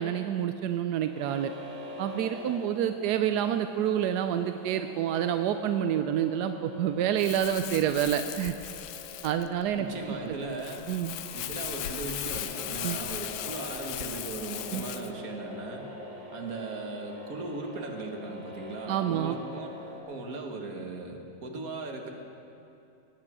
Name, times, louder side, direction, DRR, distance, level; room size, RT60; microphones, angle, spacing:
voice 1, 0.0-1.5 2.0-8.5 9.2-9.9 10.3-10.4 10.9-11.1 12.8-13.0 14.7-14.8 18.9-19.4, right 10 dB, 75° right, 8 dB, 0.9 m, -28 dB
sound 1, 1.0-20.0, left 1 dB, 20° right, 1.9 m, -45 dB
Crumpling crinkling, 7.2-15.1, left 12 dB, 80° left, 1.3 m, -38 dB
voice 2, 9.8-10.9 11.3-15.9 16.3-19.7 20.1-22.1, right 3 dB, 50° right, 2 dB, 1.8 m, -38 dB
21.0 x 8.7 x 6.1 m, 2.7 s
omnidirectional pair, 2.2 m